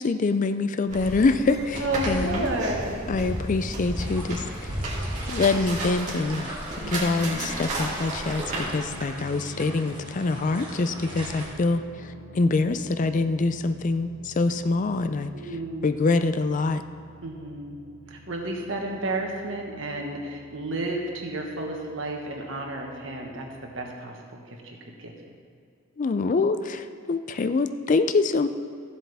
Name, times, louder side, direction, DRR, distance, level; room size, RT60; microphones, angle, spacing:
voice 1, 0.0-2.5 3.1-4.7 5.3-6.6 6.9-11.8 12.3-15.3 15.8-16.8 26.0-28.5, left 3 dB, 40° left, 10 dB, 0.4 m, -25 dB
sound 1, 0.9-9.1, right 1 dB, 40° right, 2.5 m, -32 dB
voice 2, 1.8-3.1 5.7-5.9 6.8-7.5 12.4-12.8 15.3-15.9 17.2-17.8 18.1-25.1, right 2 dB, 75° right, 1 dB, 1.5 m, -32 dB
sound 2, 3.9-11.5, right 1 dB, 25° right, 2.0 m, -40 dB
sound 3, 8.3-23.9, left 1 dB, 80° left, 0.7 m, -48 dB
15.0 x 7.5 x 3.5 m, 2.2 s
head